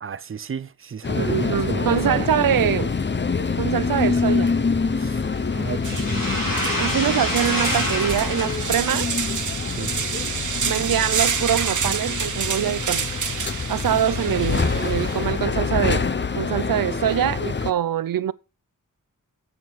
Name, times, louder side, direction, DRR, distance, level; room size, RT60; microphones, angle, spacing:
voice 1, 0.0-2.2 4.9-5.2 5.5-6.4 9.8-9.9, right 7 dB, 40° right, 0.5 m, -33 dB
sound 1, 1.0-17.7, left 4 dB, 35° left, 0.8 m, -26 dB
voice 2, 1.1-2.9 3.6-4.5 6.8-9.1 10.6-13.1 13.7-16.1 16.4-18.3, right 10 dB, 85° right, 0.6 m, -24 dB
sound 2, 5.2-12.2, left 1 dB, 80° left, 4.4 m, -30 dB
sound 3, 5.3-5.4 5.8-15.4, right 6 dB, 65° right, 1.0 m, -28 dB
7.6 x 7.1 x 6.2 m
wide cardioid pair, 125°, 33 cm